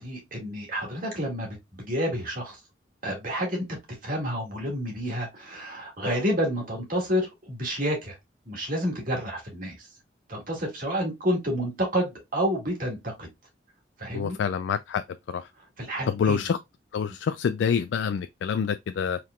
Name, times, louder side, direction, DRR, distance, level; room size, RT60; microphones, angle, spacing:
voice 1, 0.0-2.6 3.0-3.8 4.0-8.2 8.5-9.9 10.3-13.3 14.0-14.4 15.6-16.4, equal, 50° right, 1.9 m, -29 dB
voice 2, 14.1-15.0 15.3-15.4 16.1-16.6 16.9-19.2, left 7 dB, 75° left, 0.3 m, -26 dB
4.6 x 3.7 x 2.3 m
head